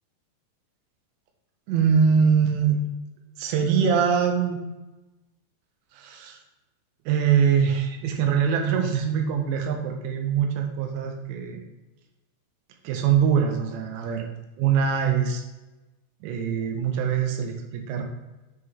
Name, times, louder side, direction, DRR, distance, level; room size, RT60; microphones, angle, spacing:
voice 1, 1.7-2.8 3.4-4.6 5.9-6.4 7.1-11.6 12.8-14.3 14.6-15.4 16.2-18.0, right 7 dB, 85° right, 3 dB, 2.8 m, -23 dB
7.7 x 3.7 x 3.3 m, 1.1 s
omnidirectional pair, 5.2 m